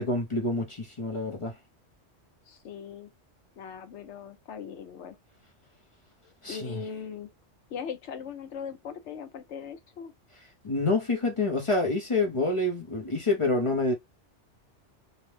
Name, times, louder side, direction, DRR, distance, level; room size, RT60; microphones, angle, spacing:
voice 1, 0.0-1.5 6.4-6.8 10.6-13.9, left 2 dB, 35° left, 0.6 m, -27 dB
voice 2, 2.5-3.1 3.6-5.2 6.2-7.3 7.7-10.1, left 7 dB, 75° left, 1.0 m, -40 dB
2.8 x 2.0 x 3.1 m
omnidirectional pair, 1.2 m